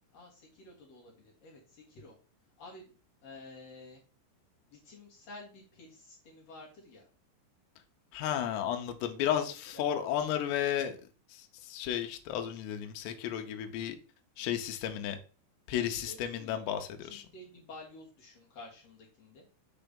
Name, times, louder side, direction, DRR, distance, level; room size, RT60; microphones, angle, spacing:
voice 1, 0.1-2.1 2.6-2.9 3.2-4.0 4.7-7.1 9.3-9.8 15.9-19.4, left 2 dB, 55° left, -2 dB, 1.9 m, -51 dB
voice 2, 8.1-11.0 11.3-14.0 14.4-15.2 15.7-17.2, left 10 dB, 80° left, 7 dB, 2.8 m, -33 dB
7.0 x 3.4 x 5.2 m, 0.37 s
omnidirectional pair, 5.3 m